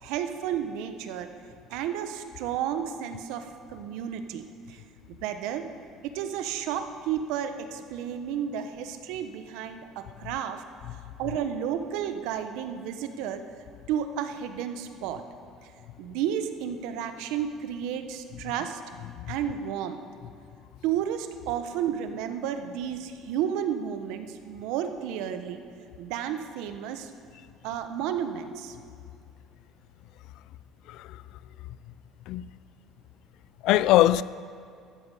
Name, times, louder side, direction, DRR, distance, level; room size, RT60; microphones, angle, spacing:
voice 1, 0.0-1.3 1.7-4.8 5.2-5.7 6.0-10.6 11.2-13.4 13.9-15.2 16.0-18.8 19.3-20.0 20.8-25.6 26.0-27.1 27.6-28.7, right 9 dB, 80° right, 1.1 m, -32 dB
voice 2, 30.9-31.2 32.3-32.5 33.6-34.2, left 14 dB, 70° left, 0.3 m, -22 dB
13.5 x 13.5 x 5.6 m
cardioid pair, 135°, 0 cm